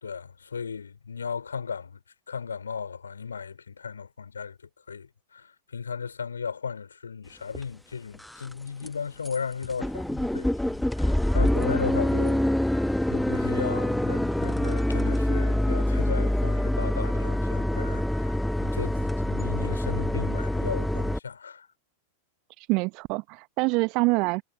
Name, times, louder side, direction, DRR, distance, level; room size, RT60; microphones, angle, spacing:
voice 1, 0.0-2.0 2.3-4.6 4.9-21.7, left 6 dB, 70° left, 4.3 m, -36 dB
sound 1, 7.5-7.6 8.1-8.5 8.8-8.9 9.3-9.4 9.6-21.2, left 1 dB, ahead, 1.3 m, -25 dB
voice 2, 22.6-24.4, right 27 dB, 40° right, 0.9 m, -25 dB
figure-of-eight pair, 90°, 0 cm